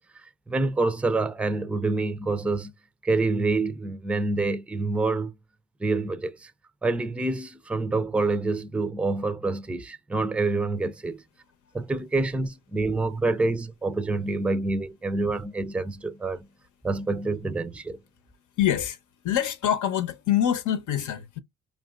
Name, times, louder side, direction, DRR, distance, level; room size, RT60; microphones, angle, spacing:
voice 1, 0.5-2.7 3.0-5.3 5.8-6.5 6.8-11.2 11.7-16.5 16.8-18.0, right 3 dB, 5° right, 0.4 m, -27 dB
voice 2, 18.6-19.0 19.2-21.4, left 10 dB, 75° left, 0.9 m, -25 dB
5.3 x 2.4 x 2.4 m
cardioid pair, 90°, 30 cm